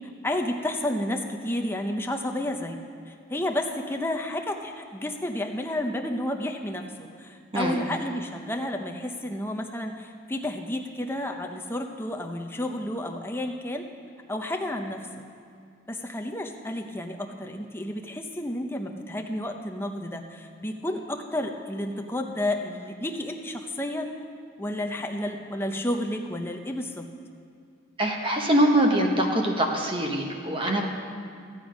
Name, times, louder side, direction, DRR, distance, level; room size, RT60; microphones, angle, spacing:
voice 1, 0.2-2.8 3.1-6.8 7.2-13.9 14.3-15.2 15.9-24.1 24.6-27.1, left 1 dB, 10° left, 3 dB, 0.6 m, -31 dB
voice 2, 28.0-30.9, right 1 dB, 25° right, 1 dB, 1.1 m, -23 dB
14.5 x 8.9 x 5.1 m, 2.3 s
head